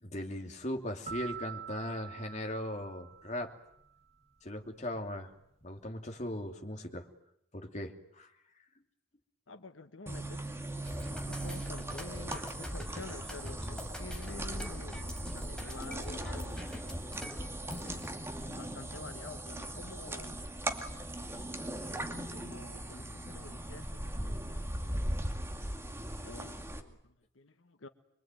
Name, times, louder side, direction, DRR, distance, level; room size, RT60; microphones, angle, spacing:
voice 1, 0.0-3.5 4.4-5.3 5.6-7.1 7.5-8.3 20.7-20.9, left 1 dB, 40° left, 3 dB, 2.8 m, -39 dB
sound 1, 1.1-3.8, right 8 dB, 35° right, 2.2 m, -45 dB
voice 2, 9.5-10.4 11.1-16.8 17.7-18.0 18.5-20.5 22.3-25.0 26.2-27.9, left 3 dB, 85° left, 8 dB, 1.4 m, -49 dB
sound 2, 10.1-26.8, right 1 dB, 15° right, 2.4 m, -39 dB
sound 3, 10.8-18.1, equal, 5° left, 4.6 m, -43 dB
26.0 x 23.0 x 9.2 m, 0.74 s
head